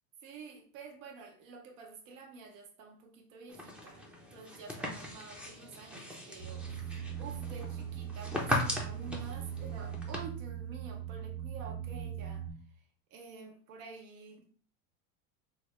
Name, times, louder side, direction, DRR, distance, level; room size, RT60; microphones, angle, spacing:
voice 1, 0.2-4.0 4.3-12.5 13.1-14.5, right 5 dB, 70° right, 0.8 m, -49 dB
sound 1, 3.5-10.2, left 1 dB, 5° right, 0.3 m, -39 dB
sound 2, 6.4-12.5, right 9 dB, 35° right, 0.7 m, -40 dB
3.2 x 2.3 x 3.0 m
supercardioid pair, 125°, 41 cm